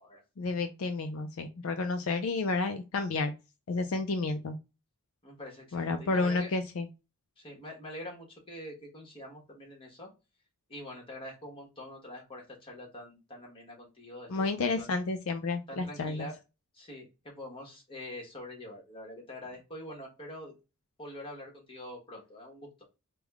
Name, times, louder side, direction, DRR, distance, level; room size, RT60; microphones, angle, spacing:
voice 1, 0.4-3.3 3.7-4.6 5.7-6.9 14.3-16.3, left 3 dB, 70° left, 7 dB, 0.4 m, -31 dB
voice 2, 5.2-6.5 7.4-10.1 10.7-14.9 15.7-16.3 16.7-20.5 21.0-22.7, left 1 dB, 25° left, -1 dB, 1.2 m, -45 dB
3.5 x 2.2 x 3.4 m, 0.27 s
head